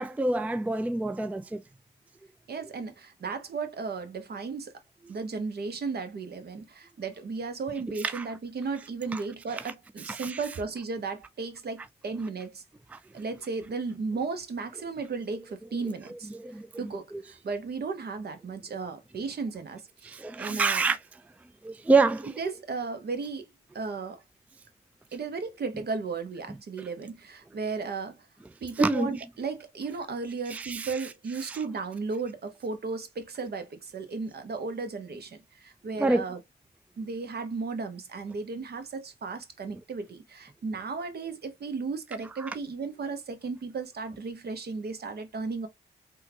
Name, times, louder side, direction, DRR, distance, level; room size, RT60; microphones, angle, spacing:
voice 1, 0.0-1.6 8.0-8.3 9.1-9.2 10.1-10.4 12.9-13.0 16.3-16.7 17.1-17.2 20.0-21.0 21.6-22.3 28.8-29.1 30.5-31.0 31.5-31.6 36.0-36.2 42.4-42.5, right 3 dB, 10° right, 0.3 m, -27 dB
voice 2, 2.5-4.7 5.1-12.6 13.1-16.3 16.8-20.8 22.4-24.2 25.1-28.2 28.6-36.4 37.0-45.7, right 4 dB, 60° right, 0.8 m, -35 dB
3.7 x 2.2 x 2.7 m
supercardioid pair, 40°, 19 cm